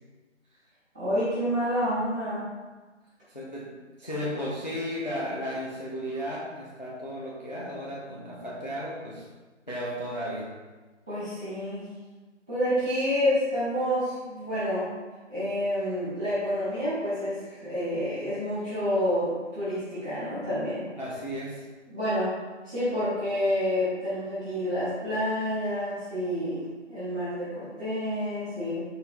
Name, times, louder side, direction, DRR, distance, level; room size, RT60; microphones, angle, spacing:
voice 1, 0.9-2.5 11.1-11.9 12.5-14.9 15.3-20.8 21.9-22.3 22.6-28.8, equal, 5° right, -22 dB, 1.1 m, -28 dB
voice 2, 3.3-9.3 9.7-10.5 21.0-21.6, equal, 35° left, -5 dB, 0.5 m, -34 dB
4.4 x 3.3 x 3.5 m, 1.3 s
figure-of-eight pair, 165°, 37 cm